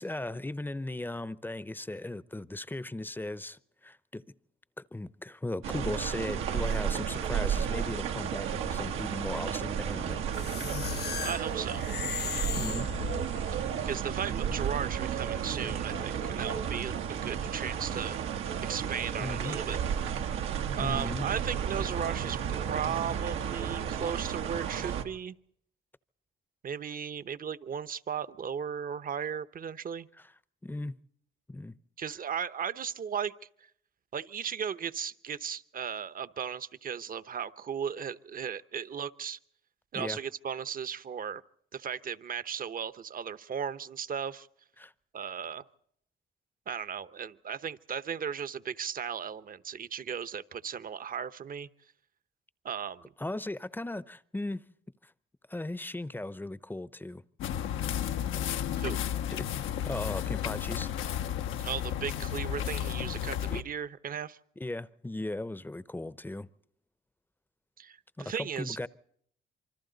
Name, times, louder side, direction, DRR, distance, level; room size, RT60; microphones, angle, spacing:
voice 1, 0.0-4.2 4.8-10.2 12.6-12.9 19.2-19.6 20.8-21.3 30.6-31.0 31.5-31.8 39.9-40.2 44.8-44.9 53.2-54.6 55.0-55.1 55.5-57.2 59.4-60.9 63.5-63.6 64.6-66.5 68.2-68.9, left 2 dB, 10° left, 0.7 m, -37 dB
sound 1, 5.6-25.1, right 8 dB, 90° right, 1.5 m, -33 dB
sound 2, 10.3-13.6, left 9 dB, 55° left, 0.7 m, -37 dB
voice 2, 11.2-11.8 13.5-18.2 18.6-19.8 20.8-22.4 22.7-25.4 26.6-30.1 32.0-33.3 34.1-39.4 39.9-41.4 41.7-44.5 45.1-45.6 46.7-51.7 52.6-53.0 58.8-59.0 61.6-64.4 67.8-68.8, right 7 dB, 45° right, 0.9 m, -36 dB
sound 3, 57.4-63.6, left 10 dB, 85° left, 1.0 m, -33 dB
27.0 x 24.5 x 4.0 m
cardioid pair, 90°, 20 cm